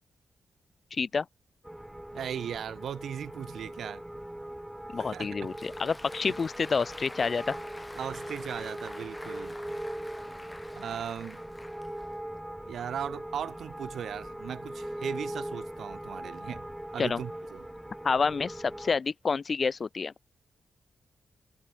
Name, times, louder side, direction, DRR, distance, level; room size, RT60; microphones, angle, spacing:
voice 1, 0.9-1.3 4.9-7.6 17.0-17.2 18.0-20.1, left 5 dB, 40° left, 0.6 m, -28 dB
sound 1, 1.6-19.0, right 1 dB, 5° right, 1.7 m, -41 dB
voice 2, 2.1-4.0 5.0-5.3 8.0-9.6 10.8-11.4 12.7-17.6, right 8 dB, 75° right, 7.1 m, -38 dB
Applause, 5.3-12.4, left 1 dB, 15° left, 3.8 m, -47 dB
wide cardioid pair, 115°, 0 cm